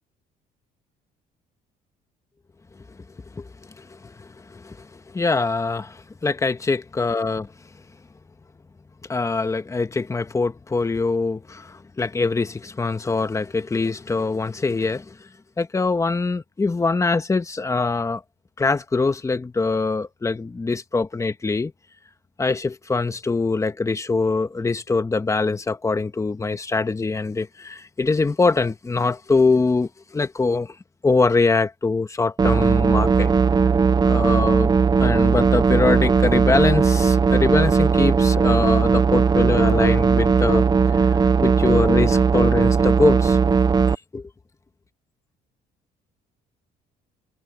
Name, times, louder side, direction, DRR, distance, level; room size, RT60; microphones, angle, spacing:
voice 1, 3.8-7.5 9.1-15.2 15.6-18.2 18.6-21.7 22.4-30.8 31.0-33.3 34.0-34.7 35.0-40.7 40.9-43.4 43.9-44.3, left 3 dB, 20° left, 1.5 m, -23 dB
sound 1, 32.4-44.0, right 5 dB, 25° right, 0.7 m, -18 dB
cardioid pair, 110°, 17 cm